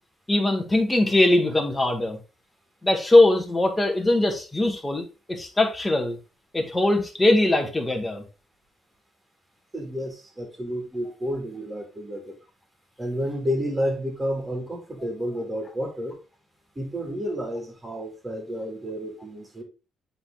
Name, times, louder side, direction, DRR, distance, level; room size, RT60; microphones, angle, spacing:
voice 1, 0.3-2.2 2.8-6.2 6.5-8.2, left 2 dB, 15° left, 3 dB, 1.8 m, -21 dB
voice 2, 9.7-12.3 13.0-16.2 16.8-19.6, equal, 20° right, 2 dB, 2.7 m, -30 dB
7.8 x 4.0 x 3.8 m, 0.32 s
cardioid pair, 90°, 0 cm